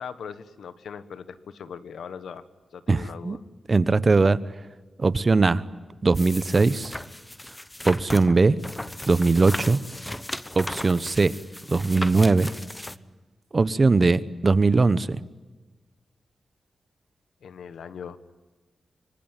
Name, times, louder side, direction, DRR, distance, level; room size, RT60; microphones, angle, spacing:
voice 1, 0.0-2.4 2.7-3.4 17.4-18.2, left 7 dB, 90° left, 12 dB, 1.5 m, -39 dB
voice 2, 2.9-3.4 3.7-4.4 5.0-5.6 6.0-6.9 7.9-8.6 9.1-9.8 10.6-11.3 11.7-12.5 13.5-15.2, right 3 dB, 35° right, 16 dB, 1.0 m, -20 dB
sound 1, 6.1-13.0, left 1 dB, 10° left, 0.8 m, -36 dB
25.5 x 25.0 x 9.2 m, 1.3 s
wide cardioid pair, 100°, 0 cm